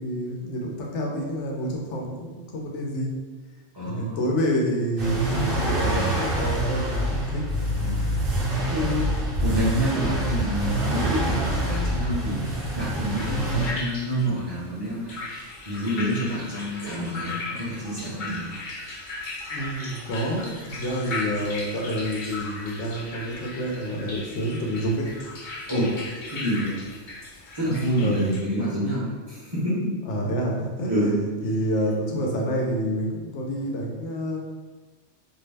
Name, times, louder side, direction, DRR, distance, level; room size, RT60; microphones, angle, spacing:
voice 1, 0.0-3.1 3.9-7.4 19.5-25.1 28.0-28.3 30.0-31.1 31.4-34.4, equal, 90° left, -1 dB, 0.9 m, -28 dB
voice 2, 3.7-4.2 7.8-8.0 8.7-18.5 25.7-26.0 26.3-26.8 27.6-29.9 30.8-31.2, equal, 30° right, -9 dB, 0.6 m, -28 dB
sound 1, 5.0-13.7, right 1 dB, 60° right, 0.8 m, -26 dB
sound 2, 12.5-28.4, left 2 dB, 55° left, 0.6 m, -37 dB
2.6 x 2.0 x 3.2 m, 1.3 s
omnidirectional pair, 1.2 m